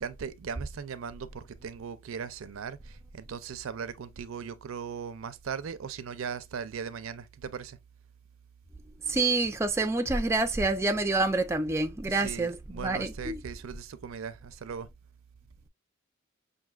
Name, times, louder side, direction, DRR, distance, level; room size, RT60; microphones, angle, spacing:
voice 1, 0.0-7.8 12.1-14.9, right 6 dB, 70° right, 0.4 m, -38 dB
voice 2, 9.1-13.4, right 2 dB, 15° right, 0.4 m, -27 dB
5.9 x 2.6 x 2.3 m
head